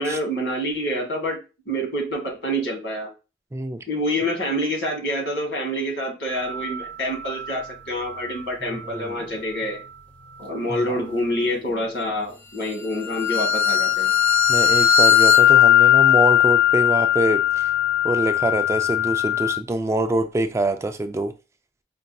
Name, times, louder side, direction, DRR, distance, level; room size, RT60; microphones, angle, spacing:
voice 1, 0.0-1.4 1.7-3.1 3.9-9.8 10.4-14.1, equal, 75° left, 1.8 m, -27 dB
sound 1, 6.4-6.8 7.3-7.5 13.0-19.6, left 10 dB, 10° left, 0.7 m, -18 dB
voice 2, 8.8-9.2 10.7-10.8 14.5-17.7 18.0-21.3, right 2 dB, 15° right, 0.3 m, -25 dB
5.2 x 2.7 x 2.3 m
head